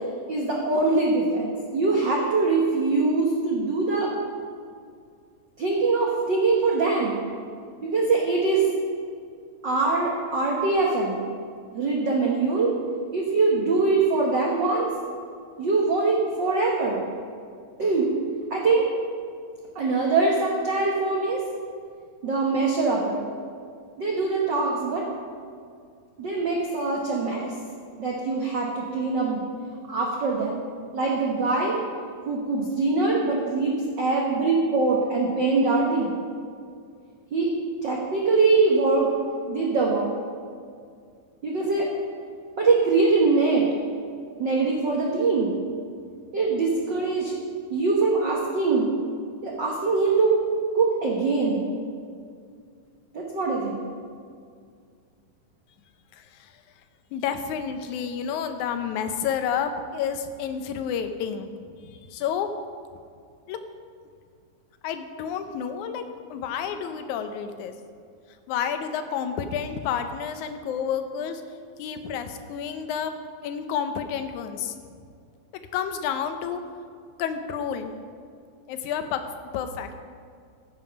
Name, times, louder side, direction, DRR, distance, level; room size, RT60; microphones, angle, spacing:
voice 1, 0.3-4.1 5.6-7.2 7.8-8.7 9.6-11.2 11.7-12.8 13.1-14.9 15.6-17.0 17.8-18.1 18.5-18.9 19.7-21.4 22.2-23.3 24.0-25.0 26.2-27.5 28.0-29.4 29.9-30.6 30.9-31.8 32.2-36.1 37.3-37.5 37.8-39.1 39.5-40.1 41.4-41.9 42.6-43.6 44.4-45.5 46.3-47.3 47.7-48.9 49.4-50.4 50.7-51.6 53.1-53.8, right 3 dB, 80° right, -2 dB, 1.0 m, -23 dB
voice 2, 56.1-56.5 57.1-61.5 61.8-62.5 63.5-63.6 64.8-67.7 68.5-71.4 71.8-73.1 73.4-74.7 75.7-76.6 77.2-77.9 78.7-79.2 79.5-79.9, left 7 dB, 75° left, 8 dB, 1.9 m, -30 dB
15.5 x 7.3 x 5.3 m, 2.2 s
omnidirectional pair, 4.1 m